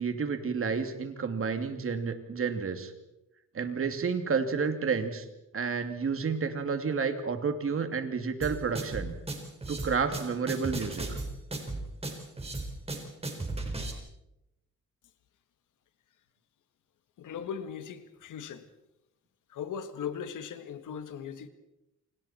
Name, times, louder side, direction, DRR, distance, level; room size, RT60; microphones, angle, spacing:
voice 1, 0.0-2.9 3.5-5.3 5.5-9.2 9.7-11.0, right 5 dB, 45° right, 2.7 m, -30 dB
sound 1, 8.4-13.9, right 2 dB, 20° right, 4.6 m, -35 dB
voice 2, 17.2-18.7 19.5-21.5, left 7 dB, 85° left, 1.9 m, -38 dB
29.0 x 26.5 x 4.5 m
cardioid pair, 120°, 30 cm